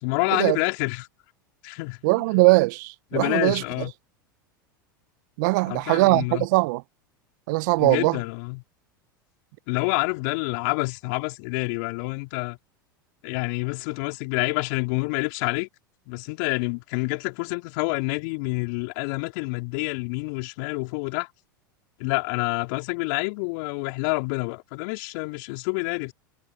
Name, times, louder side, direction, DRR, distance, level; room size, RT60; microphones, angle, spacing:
voice 1, 0.0-1.1 1.6-2.3 3.1-3.9 5.7-6.5 7.8-8.6 9.7-12.6 13.2-15.7 16.1-21.3 22.0-26.1, left 31 dB, 55° left, 4.0 m, -28 dB
voice 2, 2.0-3.6 5.4-6.8 7.5-8.2, right 25 dB, 60° right, 1.1 m, -21 dB
hypercardioid pair, 85°, 11 cm